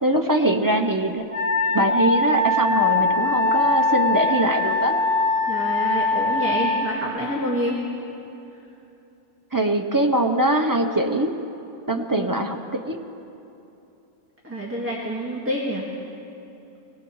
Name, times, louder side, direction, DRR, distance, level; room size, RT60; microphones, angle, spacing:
voice 1, 0.0-1.2 1.7-5.0 9.5-11.3 11.9-12.6 12.9-13.0, right 1 dB, 30° right, 3 dB, 0.4 m, -22 dB
Wind instrument woodwind instrument, 1.3-6.8, left 3 dB, 40° left, 4.4 m, -22 dB
voice 2, 5.5-7.8 11.9-12.3 14.4-15.9, equal, 10° right, -5 dB, 1.7 m, -28 dB
22.5 x 18.5 x 3.1 m, 2.9 s
omnidirectional pair, 1.6 m